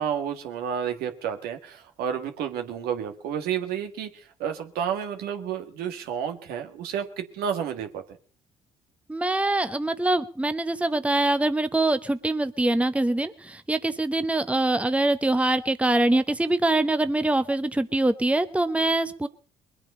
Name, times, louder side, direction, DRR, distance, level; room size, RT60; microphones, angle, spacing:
voice 1, 0.0-8.0, right 8 dB, 75° right, 6 dB, 1.7 m, -31 dB
voice 2, 9.1-19.3, right 2 dB, 10° right, 11 dB, 1.0 m, -24 dB
22.0 x 8.9 x 5.5 m, 0.43 s
hypercardioid pair, 50°, 16 cm